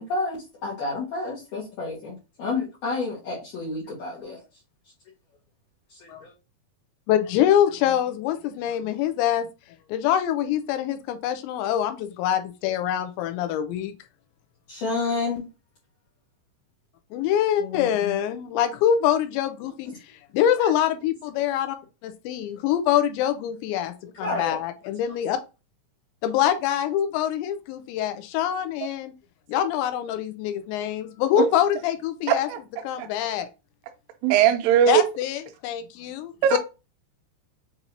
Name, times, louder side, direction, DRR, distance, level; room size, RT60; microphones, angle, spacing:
voice 1, 0.0-4.4 5.9-6.3 14.7-15.4 17.6-18.2 20.6-20.7 24.2-24.6, left 3 dB, 65° left, 2.0 m, -30 dB
voice 2, 7.1-9.5 9.9-13.9 17.1-19.9 20.3-21.8 22.0-25.4 26.2-29.1 29.5-32.5 32.8-33.5 34.9-36.6, left 10 dB, 85° left, 2.8 m, -24 dB
voice 3, 32.3-32.6 33.0-33.1 34.2-35.0 36.4-36.6, right 10 dB, 90° right, 2.2 m, -19 dB
7.2 x 2.7 x 2.7 m
omnidirectional pair, 5.2 m